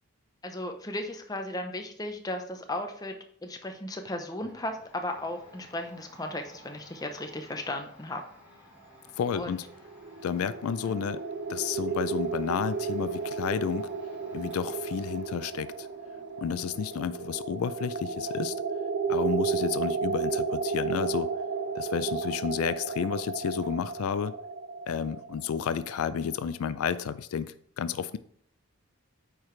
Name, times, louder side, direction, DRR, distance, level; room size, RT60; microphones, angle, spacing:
voice 1, 0.4-8.2 9.3-9.6 10.8-11.0, left 1 dB, 15° left, 5 dB, 0.6 m, -36 dB
Domestic sounds home sounds, 4.4-22.7 23.0-24.1, equal, 5° right, 2.6 m, -56 dB
voice 2, 9.2-9.6 10.2-11.2 11.5-13.9 14.3-15.9 16.4-18.5 19.1-21.3 21.7-24.3 24.9-28.2, left 7 dB, 85° left, 14 dB, 0.4 m, -31 dB
sound 1, 9.7-26.5, right 5 dB, 50° right, 0.5 m, -33 dB
8.6 x 4.7 x 3.2 m, 0.64 s
head